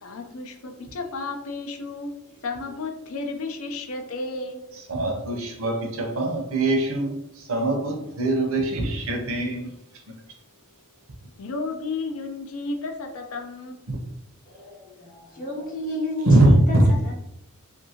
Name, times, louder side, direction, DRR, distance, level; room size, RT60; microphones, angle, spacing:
voice 1, 0.0-2.1 2.4-4.6 11.4-13.8, left 3 dB, 70° left, 3 dB, 0.5 m, -32 dB
voice 2, 4.9-9.8 10.1-10.2 13.9-14.0 16.3-16.8, right 1 dB, 65° right, 2 dB, 0.7 m, -22 dB
voice 3, 14.4-17.2, left 2 dB, 40° left, -3 dB, 0.8 m, -32 dB
2.6 x 2.6 x 2.8 m, 0.81 s
head